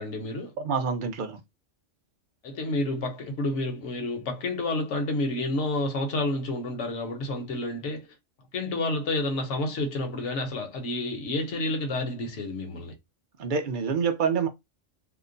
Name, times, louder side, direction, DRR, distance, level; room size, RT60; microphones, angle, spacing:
voice 1, 0.0-0.5 2.4-8.1 8.5-12.9, left 2 dB, 70° left, 1.2 m, -29 dB
voice 2, 0.6-1.4 13.4-14.5, right 6 dB, 50° right, 0.7 m, -27 dB
2.9 x 2.1 x 3.8 m
omnidirectional pair, 1.3 m